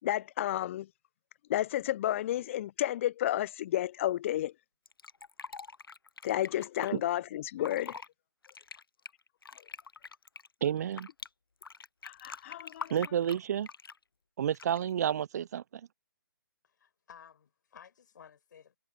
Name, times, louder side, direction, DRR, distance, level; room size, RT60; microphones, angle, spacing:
voice 1, 0.0-0.9 1.5-4.5 6.2-8.0 12.0-12.9, left 13 dB, 35° left, 0.4 m, -31 dB
Fill (with liquid), 4.9-6.9 7.5-8.1 8.4-11.3 11.6-14.0 14.5-14.9, left 4 dB, 85° left, 0.6 m, -45 dB
voice 2, 10.6-11.1 12.9-13.7 14.4-15.6, right 9 dB, 50° right, 0.3 m, -30 dB
voice 3, 16.6-18.8, left 8 dB, 60° left, 5.4 m, -55 dB
figure-of-eight pair, 140°, 12 cm